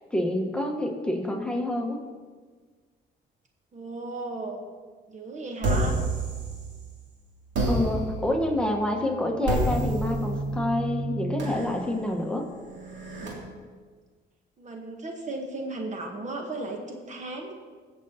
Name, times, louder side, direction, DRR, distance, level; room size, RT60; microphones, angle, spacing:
voice 1, 0.1-2.0 7.7-12.4, left 1 dB, 5° left, 2 dB, 1.1 m, -27 dB
voice 2, 3.7-4.6 5.1-6.0 14.6-17.5, right 2 dB, 40° right, 2 dB, 1.0 m, -35 dB
sound 1, 5.6-7.0 7.5-13.3, right 1 dB, 85° right, 2.5 m, -30 dB
16.0 x 6.7 x 2.8 m, 1.5 s
cardioid pair, 115°, 19 cm